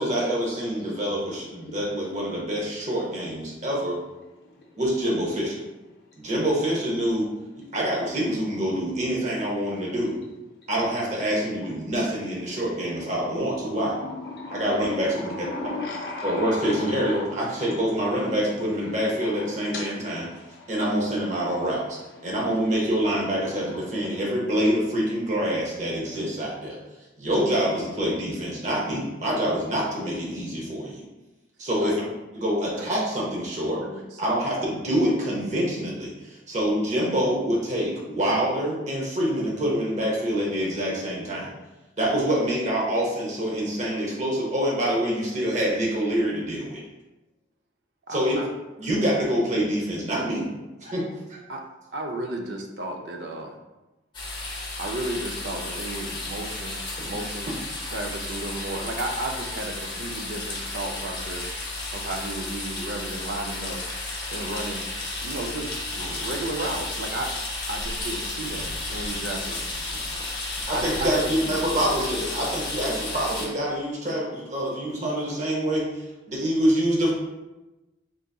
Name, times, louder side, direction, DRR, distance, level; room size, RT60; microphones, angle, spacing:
voice 1, 0.0-4.0 4.8-5.6 6.2-7.3 7.7-10.1 10.7-14.0 14.5-15.5 16.2-20.3 20.7-26.8 27.2-31.0 31.6-31.9 32.3-33.8 34.2-41.5 42.0-46.8 48.1-48.4 48.8-50.5 50.8-51.4 70.7-77.1, equal, 40° right, -4 dB, 0.8 m, -26 dB
voice 2, 12.9-21.0 21.9-24.2, left 3 dB, 60° left, -2 dB, 0.5 m, -39 dB
voice 3, 33.8-34.3 48.1-48.5 51.5-51.6 51.9-53.5 54.8-57.5 57.9-61.5 61.9-63.8 64.3-64.9 65.2-67.3 67.7-69.7 70.7-71.6, right 2 dB, 75° right, 3 dB, 0.5 m, -33 dB
sound 1, 54.1-73.5, left 2 dB, 25° left, 0.8 m, -33 dB
3.9 x 3.8 x 2.3 m, 1.1 s
head